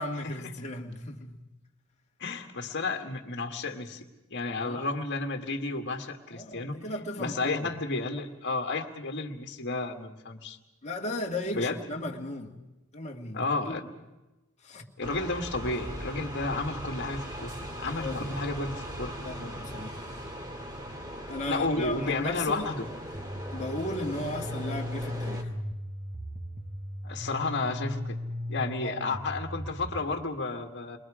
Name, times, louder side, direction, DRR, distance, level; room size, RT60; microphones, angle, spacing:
voice 1, 0.0-1.4 4.6-4.9 6.3-7.7 10.8-12.6 12.9-13.8 14.6-14.9 18.0-18.3 19.2-20.1 21.3-22.7 23.5-25.5 28.8-29.2, left 1 dB, 30° left, 1.8 m, -36 dB
voice 2, 2.2-6.8 7.2-10.6 11.5-11.8 13.3-13.8 15.0-19.1 21.5-22.9 27.0-28.2 28.5-31.0, left 3 dB, 50° left, 1.8 m, -32 dB
sound 1, 15.0-25.4, equal, 20° right, 2.6 m, -39 dB
sound 2, 23.1-30.0, left 1 dB, 35° right, 1.5 m, -37 dB
29.5 x 23.0 x 5.0 m
head